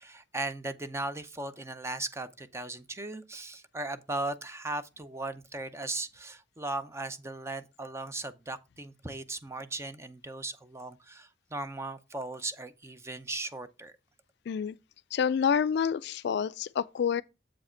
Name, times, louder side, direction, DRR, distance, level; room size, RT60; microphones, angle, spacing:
voice 1, 0.0-13.9, right 2 dB, 15° right, 0.5 m, -37 dB
voice 2, 15.1-17.2, left 7 dB, 65° left, 0.3 m, -28 dB
7.5 x 4.8 x 4.3 m
head